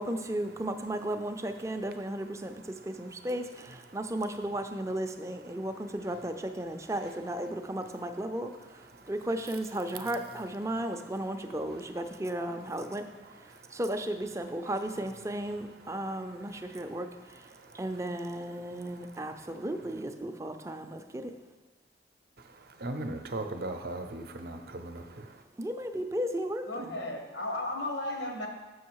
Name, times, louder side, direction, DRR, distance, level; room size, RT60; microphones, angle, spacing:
voice 1, 0.0-13.0 13.7-17.1 17.3-17.4 17.7-21.3 25.6-27.0, right 1 dB, 15° right, 0.4 m, -35 dB
voice 2, 22.8-25.2, right 2 dB, 55° right, 0.6 m, -37 dB
voice 3, 26.7-28.5, left 1 dB, 85° left, 1.2 m, -34 dB
6.7 x 6.3 x 4.7 m
head